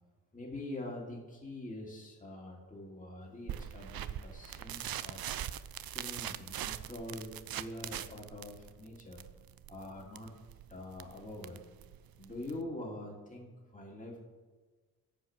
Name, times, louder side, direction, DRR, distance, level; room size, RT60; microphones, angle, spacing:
voice 1, 0.3-5.3 5.8-9.2 9.7-10.3 10.7-11.6 12.2-14.2, left 1 dB, 20° left, -2 dB, 2.9 m, -44 dB
sound 1, 3.5-12.6, right 11 dB, 60° right, 0.6 m, -42 dB
10.5 x 4.8 x 7.5 m, 1.3 s
cardioid pair, 60°, 40 cm